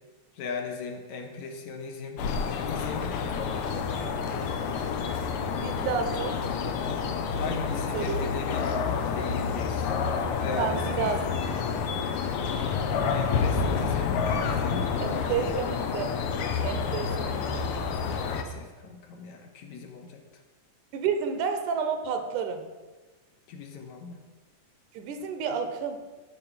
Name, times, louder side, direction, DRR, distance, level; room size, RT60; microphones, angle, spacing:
voice 1, 0.3-4.0 7.4-10.0 10.4-11.2 13.1-15.6 18.1-20.2 23.5-24.2, left 5 dB, 70° left, 3 dB, 2.3 m, -38 dB
sound 1, 2.2-18.4, left 5 dB, 90° left, 1.2 m, -29 dB
voice 2, 5.6-6.4 7.9-8.3 10.6-11.2 15.0-16.2 16.6-17.6 20.9-22.6 24.9-26.0, right 6 dB, 80° right, 7 dB, 2.4 m, -30 dB
12.0 x 4.8 x 7.0 m, 1.3 s
omnidirectional pair, 3.6 m